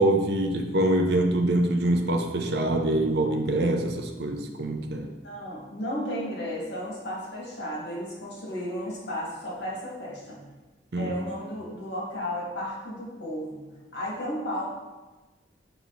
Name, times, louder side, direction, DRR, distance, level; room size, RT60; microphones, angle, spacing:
voice 1, 0.0-5.1 10.9-11.1, right 1 dB, 70° right, 3 dB, 0.6 m, -24 dB
voice 2, 5.2-10.4 11.0-13.7 13.9-14.6, equal, 90° left, -5 dB, 2.0 m, -34 dB
5.2 x 4.8 x 3.8 m, 1.2 s
head